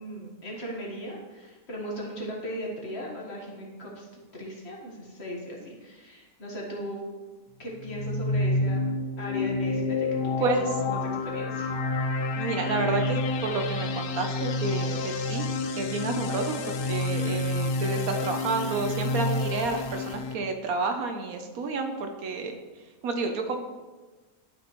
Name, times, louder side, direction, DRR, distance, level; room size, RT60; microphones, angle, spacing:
voice 1, 0.0-4.1 4.3-7.1 7.6-8.8 9.2-10.6 10.8-11.7 17.2-17.3, equal, 45° left, -2 dB, 1.7 m, -37 dB
sound 1, 7.8-20.3, left 2 dB, 80° left, 0.5 m, -29 dB
voice 2, 10.4-10.7 12.3-22.5 23.0-23.6, right 3 dB, 70° right, 5 dB, 1.2 m, -30 dB
11.0 x 5.8 x 3.1 m, 1.3 s
omnidirectional pair, 1.6 m